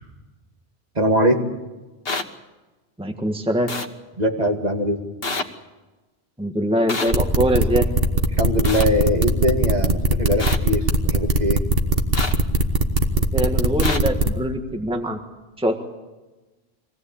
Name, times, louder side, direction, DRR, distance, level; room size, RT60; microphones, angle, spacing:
voice 1, 1.0-1.5 4.2-5.0 8.4-11.6, equal, 40° right, 2 dB, 2.3 m, -21 dB
sound 1, 2.0-2.2 3.7-3.9 5.2-5.4 6.9-7.1 8.6-8.8 10.4-10.6 12.1-12.3 13.8-14.0, left 3 dB, 65° left, 1.6 m, -26 dB
voice 2, 3.0-3.7 6.4-7.9 13.3-15.2 15.6-15.8, equal, 5° right, 4 dB, 1.5 m, -23 dB
sound 2, 7.1-14.3, right 3 dB, 65° right, 1.8 m, -19 dB
24.5 x 17.5 x 8.6 m, 1.2 s
omnidirectional pair, 1.0 m